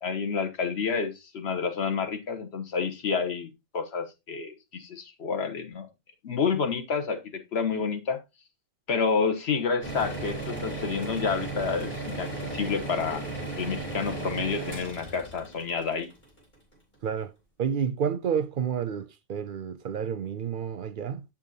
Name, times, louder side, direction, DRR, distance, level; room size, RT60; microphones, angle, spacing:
voice 1, 0.0-5.9 6.2-8.2 8.9-13.2 13.6-16.1, left 5 dB, 75° left, 1.2 m, -29 dB
sound 1, 9.8-16.7, right 2 dB, 45° left, 3.1 m, -35 dB
voice 2, 17.6-21.2, right 7 dB, 60° right, 0.6 m, -30 dB
7.1 x 7.1 x 2.7 m
omnidirectional pair, 1.1 m